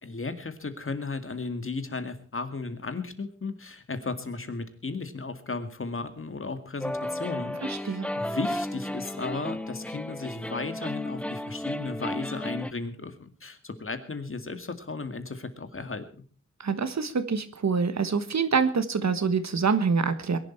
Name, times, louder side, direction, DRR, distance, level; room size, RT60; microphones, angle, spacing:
voice 1, 0.0-16.1, left 3 dB, 45° left, 9 dB, 2.0 m, -35 dB
The West Groove, 6.8-12.7, left 1 dB, 5° left, 0.7 m, -33 dB
voice 2, 7.6-8.1 16.6-20.4, right 5 dB, 65° right, 11 dB, 1.4 m, -26 dB
22.0 x 11.5 x 4.5 m, 0.40 s
wide cardioid pair, 105°, 29 cm